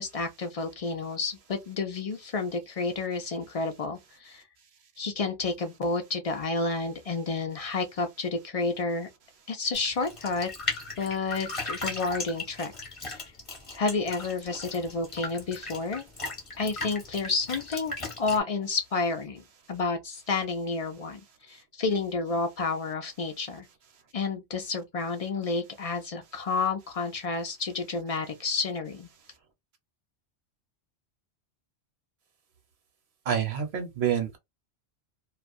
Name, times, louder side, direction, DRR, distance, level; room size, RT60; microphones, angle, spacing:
voice 1, 0.0-4.4 5.0-9.1 9.5-10.5 11.0-12.7 13.0-13.2 13.7-16.1 16.6-23.7 24.1-29.1, left 4 dB, 55° left, 0.4 m, -30 dB
sound 1, 9.7-18.4, left 2 dB, 30° left, 0.9 m, -37 dB
voice 2, 33.3-34.4, right 8 dB, 70° right, 1.0 m, -27 dB
2.4 x 2.2 x 2.5 m
omnidirectional pair, 1.1 m